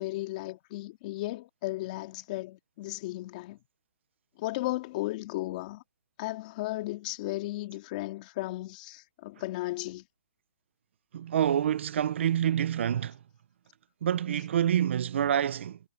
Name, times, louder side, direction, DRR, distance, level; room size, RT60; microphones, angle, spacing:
voice 1, 0.0-3.6 4.4-5.8 6.2-10.0, left 18 dB, 30° left, 2.7 m, -35 dB
voice 2, 11.1-13.2 14.0-15.8, right 10 dB, 50° right, 0.8 m, -27 dB
hypercardioid pair, 160°, 8 cm